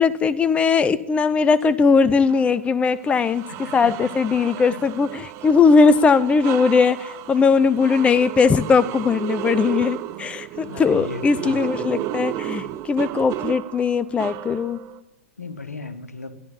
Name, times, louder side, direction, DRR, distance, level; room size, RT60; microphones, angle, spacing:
voice 1, 0.0-14.8, left 5 dB, 15° left, 16 dB, 0.5 m, -19 dB
sound 1, 2.3-2.4 3.0-15.0, right 13 dB, 40° right, 0.8 m, -33 dB
voice 2, 3.5-3.9 4.5-4.8 10.6-12.1 15.4-16.4, left 3 dB, 85° left, 9 dB, 1.3 m, -37 dB
13.5 x 11.0 x 6.9 m, 0.85 s
figure-of-eight pair, 100°, 8 cm